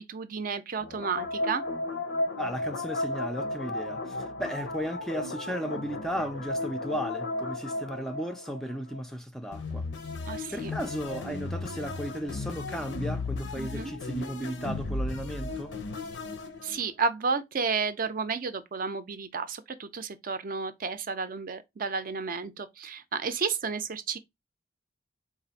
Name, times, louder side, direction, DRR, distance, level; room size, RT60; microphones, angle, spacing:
voice 1, 0.0-1.6 10.3-10.7 13.6-13.9 16.6-24.2, right 5 dB, 50° right, 0.5 m, -32 dB
sound 1, 0.8-9.0 9.5-16.9, left 2 dB, 80° left, 0.6 m, -34 dB
voice 2, 2.4-9.9 10.5-15.7, equal, 5° left, 0.4 m, -35 dB
4.1 x 2.5 x 4.0 m
head